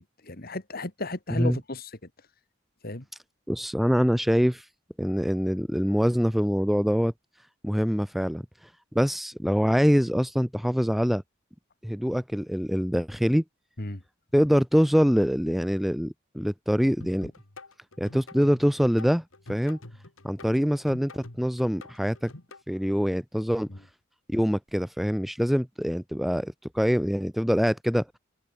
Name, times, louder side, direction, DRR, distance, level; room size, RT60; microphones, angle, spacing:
voice 1, 0.0-1.9 2.8-3.1 13.8-14.0 23.7-23.8, left 2 dB, 50° left, 2.1 m, -34 dB
voice 2, 3.5-4.7 5.0-7.1 7.6-8.4 8.9-11.2 11.8-13.4 14.3-17.3 18.0-19.2 19.5-19.8 20.2-22.3 22.7-23.7 24.3-28.1, equal, ahead, 0.7 m, -24 dB
sound 1, 17.0-22.6, left 2 dB, 85° left, 2.7 m, -46 dB
open air
head